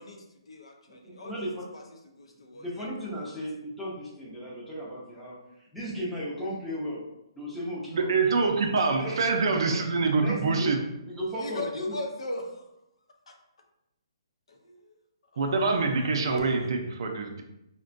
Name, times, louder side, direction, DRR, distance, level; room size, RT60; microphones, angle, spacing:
voice 1, 0.0-1.8 2.1-3.4 11.4-12.5 13.3-13.4 14.5-14.9 15.3-16.9, left 2 dB, 85° left, 3 dB, 0.6 m, -40 dB
voice 2, 1.0-1.6 2.5-5.4 5.7-7.0 7.4-8.1 8.9-9.2 9.7-9.8 10.2-10.8 11.1-11.7, equal, ahead, -8 dB, 0.6 m, -35 dB
voice 3, 7.9-10.8 15.4-17.4, right 4 dB, 55° right, 4 dB, 0.5 m, -25 dB
3.5 x 2.2 x 2.5 m, 0.88 s
hypercardioid pair, 170°, 3 cm